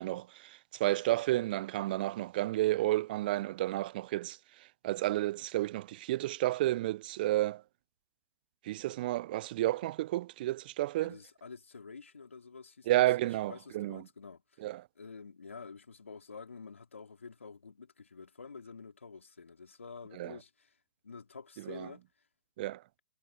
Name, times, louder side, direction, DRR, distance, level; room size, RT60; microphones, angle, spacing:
voice 1, 0.0-4.4 4.8-7.6 8.6-11.2 12.9-14.0 14.6-14.9 20.2-20.4 21.7-21.9 22.6-22.8, right 16 dB, 45° right, 0.5 m, -31 dB
voice 2, 11.0-13.1 13.5-14.4 15.0-20.7 21.0-22.0, left 5 dB, 80° left, 4.2 m, -48 dB
figure-of-eight pair, 120°, 7 cm